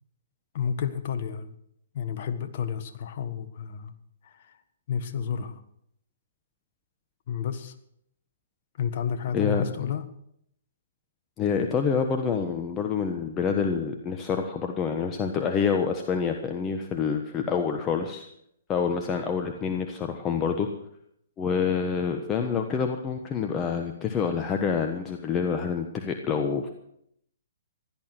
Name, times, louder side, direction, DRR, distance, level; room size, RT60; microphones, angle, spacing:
voice 1, 0.5-1.5 1.9-3.9 4.2-4.6 4.9-5.6 7.3-7.7 8.8-10.1, left 7 dB, 50° left, 9 dB, 1.5 m, -31 dB
voice 2, 11.4-18.2 18.7-20.7 21.4-26.7, left 6 dB, 20° left, 4 dB, 1.3 m, -27 dB
16.5 x 11.5 x 6.2 m, 0.73 s
figure-of-eight pair, 125°, 0 cm